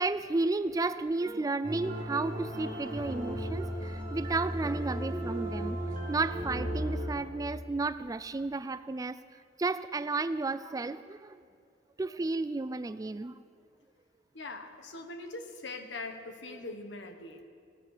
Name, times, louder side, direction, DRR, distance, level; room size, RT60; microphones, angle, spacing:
voice 1, 0.0-5.8 6.1-9.2 9.6-11.4 12.0-13.4 16.5-16.6, right 3 dB, 20° right, 14 dB, 0.3 m, -32 dB
sound 1, 1.6-7.1, right 1 dB, 40° right, 4.3 m, -35 dB
voice 2, 14.3-17.4, left 2 dB, 80° left, 6 dB, 1.4 m, -42 dB
16.5 x 16.5 x 5.0 m, 2.2 s
head